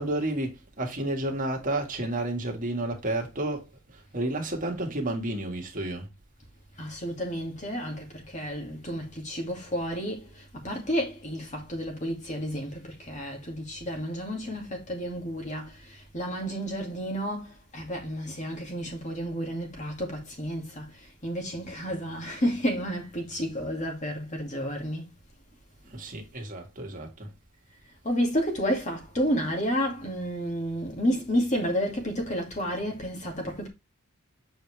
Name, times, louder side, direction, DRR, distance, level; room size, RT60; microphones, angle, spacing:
voice 1, 0.0-3.7 4.1-6.1 25.9-27.3, right 1 dB, 40° right, 1.8 m, -31 dB
voice 2, 6.8-25.1 28.0-33.7, equal, 35° left, 2.3 m, -31 dB
7.4 x 4.9 x 3.3 m
head